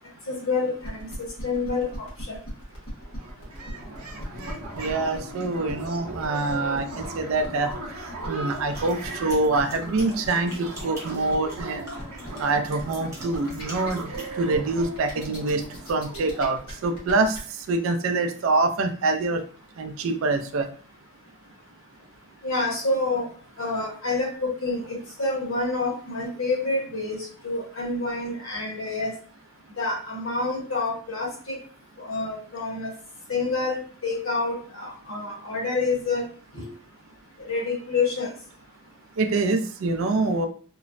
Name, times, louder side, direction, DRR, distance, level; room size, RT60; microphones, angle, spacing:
voice 1, 0.3-2.4 22.4-23.3 23.6-29.1 29.8-31.6 32.0-32.9 33.3-36.3 36.5-36.7 37.5-38.3, left 3 dB, 65° left, 0 dB, 0.8 m, -28 dB
sound 1, 0.8-17.4, equal, 90° left, 1.4 m, -41 dB
sound 2, 2.7-2.8 3.0-17.6, right 2 dB, 90° right, 0.8 m, -38 dB
voice 2, 4.8-7.7 8.3-11.8 12.4-17.4 17.7-19.4 19.8-20.7 39.2-40.5, right 3 dB, 65° right, 8 dB, 0.4 m, -25 dB
sound 3, 8.5-14.3, right 1 dB, 15° right, 0.9 m, -44 dB
3.0 x 2.0 x 2.5 m, 0.43 s
head